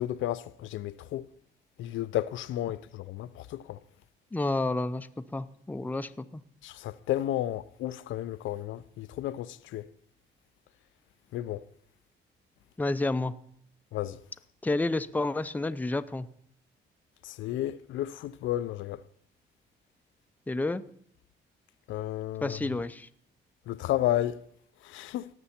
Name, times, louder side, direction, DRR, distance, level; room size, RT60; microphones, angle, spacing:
voice 1, 0.0-1.3 1.8-3.8 6.6-9.9 11.3-11.7 13.9-14.2 17.2-19.0 21.9-22.7 23.7-24.4 24.8-25.3, left 13 dB, 75° left, 0.4 m, -32 dB
voice 2, 4.3-6.4 12.8-13.3 14.6-16.3 20.5-20.8 22.4-23.1, left 2 dB, 10° left, 0.5 m, -30 dB
18.0 x 6.9 x 4.3 m
cardioid pair, 90°, 20 cm